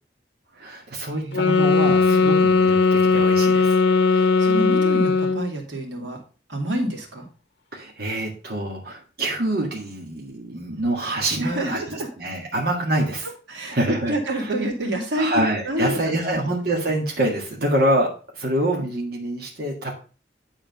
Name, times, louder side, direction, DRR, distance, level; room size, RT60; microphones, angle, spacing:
voice 1, 0.6-3.8 7.7-11.8 12.2-13.3 13.7-14.5 15.2-18.1 18.3-19.9, right 1 dB, 60° right, -2 dB, 1.7 m, -25 dB
voice 2, 1.1-2.5 4.1-6.2 6.5-7.3 11.4-12.1 13.5-16.5, right 1 dB, 90° right, 0 dB, 2.4 m, -29 dB
sound 1, 1.3-5.5, left 4 dB, 85° left, 0.7 m, -18 dB
9.3 x 3.9 x 5.2 m, 0.37 s
head